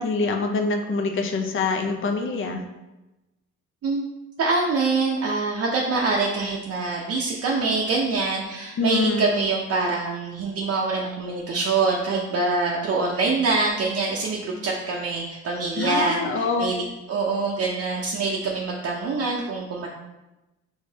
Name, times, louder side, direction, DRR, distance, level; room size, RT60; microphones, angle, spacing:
voice 1, 0.0-2.6 8.8-9.3 15.8-16.7, left 3 dB, 40° left, 4 dB, 0.6 m, -25 dB
voice 2, 4.4-19.9, right 3 dB, 50° right, -3 dB, 0.6 m, -25 dB
4.7 x 3.2 x 2.7 m, 1.0 s
cardioid pair, 90°, 30 cm